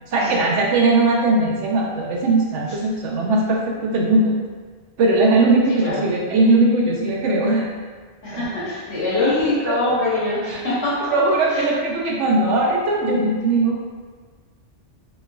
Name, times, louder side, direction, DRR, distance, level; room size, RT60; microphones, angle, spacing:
voice 1, 0.1-4.4 5.0-7.7 8.3-8.4 9.7-9.8 10.5-10.6 11.1-13.8, right 2 dB, 80° right, -1 dB, 0.9 m, -19 dB
voice 2, 5.7-6.1 8.2-11.2 11.5-11.6, left 2 dB, 65° left, -8 dB, 1.3 m, -23 dB
3.1 x 3.0 x 2.2 m, 1.5 s
omnidirectional pair, 1.2 m